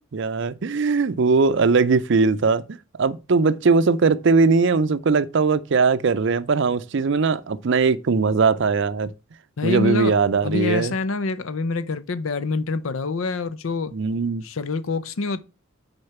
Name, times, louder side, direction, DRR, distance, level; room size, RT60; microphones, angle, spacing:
voice 1, 0.1-9.1 9.6-10.9 13.9-14.4, right 4 dB, 60° right, 0.5 m, -20 dB
voice 2, 9.6-10.1 10.4-13.9 14.4-15.4, left 3 dB, 75° left, 0.7 m, -26 dB
6.4 x 4.4 x 5.8 m
head